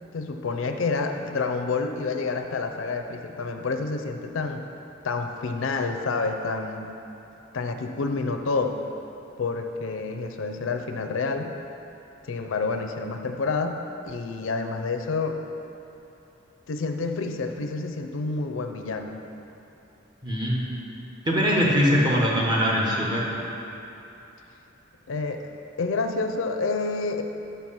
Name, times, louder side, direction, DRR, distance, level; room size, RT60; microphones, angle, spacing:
voice 1, 0.1-4.6 5.0-6.9 7.5-8.8 9.4-11.5 12.3-15.4 16.7-19.2 25.1-25.4 25.8-27.2, left 4 dB, 75° left, 5 dB, 0.5 m, -28 dB
voice 2, 20.2-20.7 21.2-23.2, equal, 20° right, -4 dB, 1.1 m, -22 dB
6.0 x 5.5 x 5.6 m, 3.0 s
head